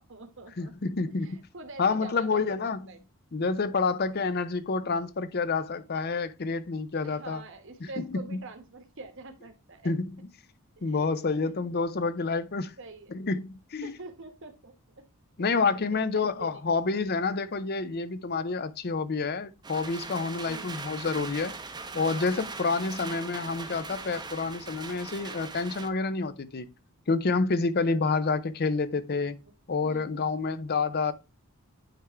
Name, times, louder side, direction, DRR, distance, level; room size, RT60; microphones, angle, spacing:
voice 1, 0.0-0.7 1.1-3.0 7.0-9.9 10.8-11.2 11.4-11.7 12.8-13.2 13.8-15.0 15.5-15.6 15.9-16.6 20.4-20.7 28.1-28.2 29.3-29.5 29.8-30.6, right 3 dB, 55° right, 1.3 m, -46 dB
voice 2, 0.6-1.4 1.8-2.8 3.3-7.4 8.0-8.4 9.8-10.1 10.8-12.7 13.1-13.9 15.4-21.6 21.9-26.7 27.1-29.4 29.7-31.1, left 4 dB, 45° left, 0.5 m, -28 dB
sound 1, 19.6-25.9, right 4 dB, 20° right, 0.7 m, -40 dB
9.0 x 3.6 x 4.4 m
head